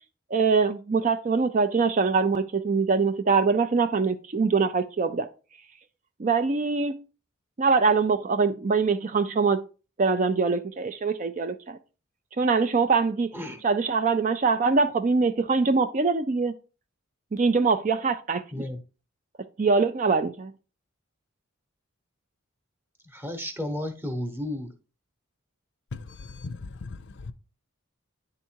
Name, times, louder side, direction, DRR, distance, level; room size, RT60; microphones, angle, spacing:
voice 1, 0.3-5.3 6.2-7.0 7.6-9.6 10.0-11.8 12.4-13.3 13.6-16.5 17.3-18.6 19.6-20.5, right 4 dB, 35° right, 0.4 m, -23 dB
voice 2, 23.1-24.7, left 1 dB, 10° right, 1.0 m, -33 dB
voice 3, 25.9-26.9 27.3-27.4, left 3 dB, 55° left, 0.6 m, -38 dB
9.7 x 3.6 x 4.5 m
head